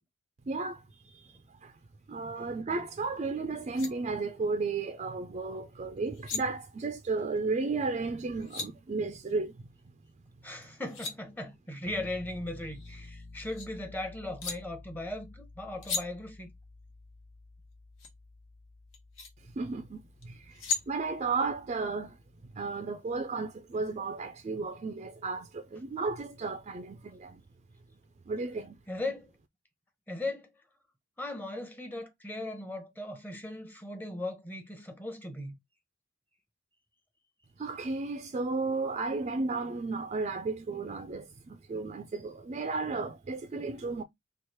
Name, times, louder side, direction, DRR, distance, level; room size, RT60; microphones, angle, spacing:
voice 1, 0.5-0.8 1.1-1.2 1.6-1.7 2.1-9.6 19.6-20.6 20.9-22.2 22.5-27.4 28.3-28.8 37.6-44.0, right 3 dB, 35° right, 0.4 m, -33 dB
sound 1, 3.3-3.4 3.6-3.9 6.0-6.4 8.1-8.7 10.6-11.2 12.5-13.7 14.4-14.6 15.8-16.0 18.0-18.1 18.9-19.3 20.2-20.9, left 5 dB, 75° left, 1.1 m, -36 dB
voice 2, 10.4-16.5 28.9-29.3 30.1-30.5 31.2-35.6, left 2 dB, 10° left, 0.7 m, -38 dB
Piano, 11.8-22.7, left 2 dB, 30° left, 0.4 m, -52 dB
3.1 x 2.4 x 4.3 m
head